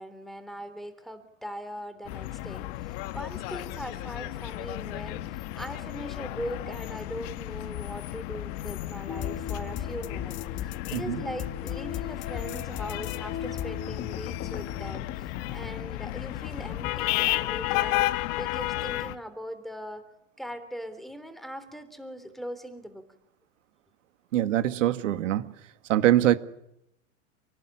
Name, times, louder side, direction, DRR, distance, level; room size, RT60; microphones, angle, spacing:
voice 1, 0.0-18.1 18.4-20.0 20.4-23.1, equal, ahead, 3.4 m, -40 dB
sound 1, 2.0-19.2, left 17 dB, 50° left, 1.6 m, -33 dB
sound 2, 9.1-17.0, left 9 dB, 30° left, 1.7 m, -37 dB
voice 2, 24.3-25.5 25.9-26.4, right 13 dB, 75° right, 1.9 m, -23 dB
28.5 x 18.5 x 10.0 m
hypercardioid pair, 130°, 38 cm